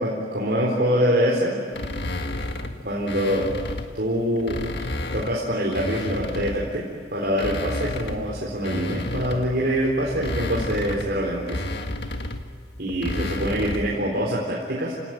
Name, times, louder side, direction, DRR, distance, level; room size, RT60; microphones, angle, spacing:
voice 1, 0.0-1.6 2.8-3.5 3.9-4.6 5.1-6.9 7.1-11.6 12.8-14.9, equal, 65° right, -4 dB, 4.1 m, -24 dB
sound 1, 1.7-3.9 4.4-6.8 7.2-14.0, left 1 dB, 70° left, 1.7 m, -31 dB
29.0 x 18.0 x 9.4 m, 2.1 s
head